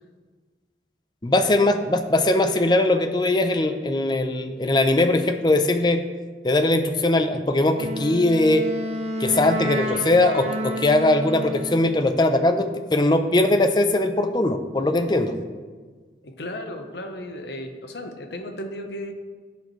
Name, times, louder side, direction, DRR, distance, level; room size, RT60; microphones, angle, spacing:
voice 1, 1.2-6.0 6.4-8.6 9.2-15.4, left 2 dB, 25° left, 8 dB, 0.5 m, -20 dB
Wind instrument woodwind instrument, 7.7-12.0, equal, 35° right, 0.9 m, -30 dB
voice 2, 16.2-19.1, left 1 dB, 75° left, 5 dB, 0.9 m, -35 dB
12.0 x 8.4 x 3.1 m, 1.5 s
head